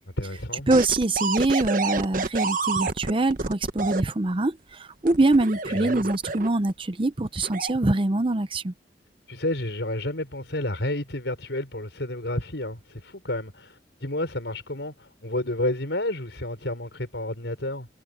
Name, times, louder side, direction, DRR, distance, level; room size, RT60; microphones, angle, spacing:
voice 1, 0.2-0.7 5.7-6.1 9.3-17.9, left 1 dB, 85° left, 5.1 m, -30 dB
voice 2, 0.7-8.7, right 2 dB, 30° right, 0.7 m, -24 dB
sound 1, 0.7-4.0 5.1-6.7 7.4-7.7, right 4 dB, 50° right, 1.2 m, -28 dB
head